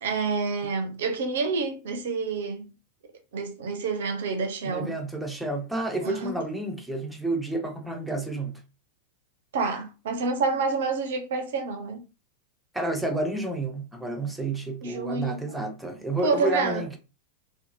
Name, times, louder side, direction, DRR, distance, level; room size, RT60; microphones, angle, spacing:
voice 1, 0.0-2.7 3.3-4.9 6.0-6.3 9.5-12.0 14.8-15.4 16.2-16.8, right 4 dB, 60° right, 0.5 m, -28 dB
voice 2, 4.7-8.6 12.7-17.0, right 2 dB, 5° right, 0.6 m, -30 dB
2.7 x 2.2 x 2.6 m
figure-of-eight pair, 90°, 0 cm